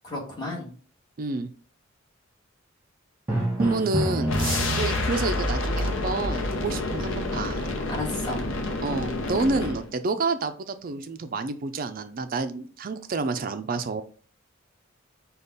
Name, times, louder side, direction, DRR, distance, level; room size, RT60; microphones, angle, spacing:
voice 1, 0.0-0.7 6.8-7.0 7.9-8.4, left 2 dB, 20° left, -4 dB, 1.6 m, -33 dB
voice 2, 1.2-1.5 3.6-7.7 8.8-14.0, right 3 dB, 45° right, 10 dB, 0.4 m, -29 dB
Drum, 3.3-5.3, right 1 dB, 10° right, 1.3 m, -28 dB
sound 1, 4.3-9.9, left 2 dB, 70° left, 0.7 m, -28 dB
5.2 x 2.3 x 4.0 m, 0.41 s
head